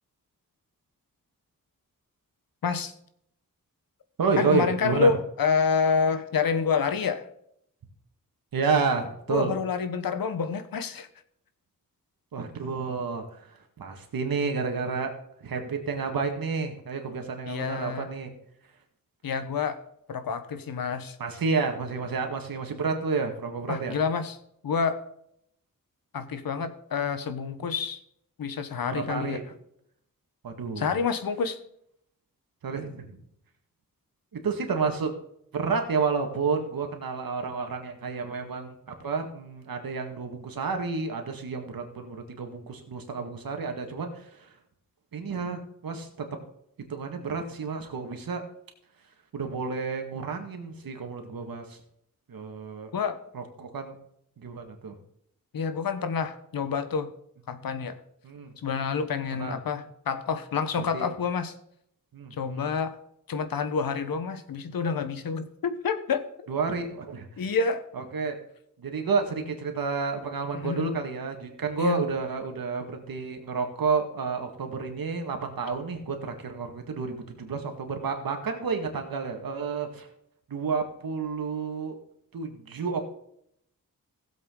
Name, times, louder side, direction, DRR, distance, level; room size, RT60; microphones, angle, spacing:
voice 1, 2.6-2.9 4.4-7.3 9.3-11.1 17.5-18.1 19.2-19.8 20.1-21.2 23.7-24.3 24.6-25.0 26.1-28.0 28.4-29.4 30.8-31.6 52.9-53.2 55.5-57.1 57.5-58.0 58.6-61.5 62.4-63.0 63.3-66.3 67.4-67.8 70.5-70.9 71.8-72.0, left 5 dB, 90° left, 11 dB, 1.1 m, -28 dB
voice 2, 4.2-5.1 8.5-9.5 12.3-15.1 15.4-18.3 21.2-24.0 28.9-29.4 30.4-30.9 32.6-33.2 34.3-35.1 35.5-44.5 45.1-46.1 46.9-48.4 49.3-51.8 52.3-52.9 53.3-54.0 54.4-55.0 58.2-58.5 59.4-59.6 60.9-61.1 62.1-62.7 66.5-67.4 67.9-68.4 68.8-80.1 80.5-82.0 82.3-83.0, right 4 dB, 85° right, 4 dB, 1.9 m, -30 dB
16.5 x 7.8 x 3.8 m, 0.72 s
wide cardioid pair, 100°, 34 cm